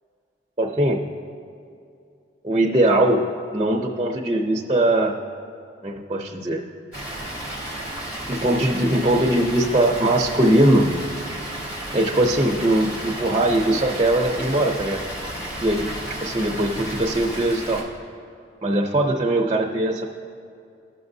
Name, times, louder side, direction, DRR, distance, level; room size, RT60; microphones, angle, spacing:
voice 1, 0.6-1.0 2.4-3.3 3.5-5.2 5.8-6.6 8.3-10.9 11.9-15.0 15.6-15.9 16.2-17.8 18.6-20.1, right 1 dB, 25° right, 0 dB, 0.5 m, -20 dB
Water, 6.9-17.8, right 1 dB, 55° left, 2.0 m, -33 dB
16.0 x 6.0 x 2.7 m, 2.5 s
head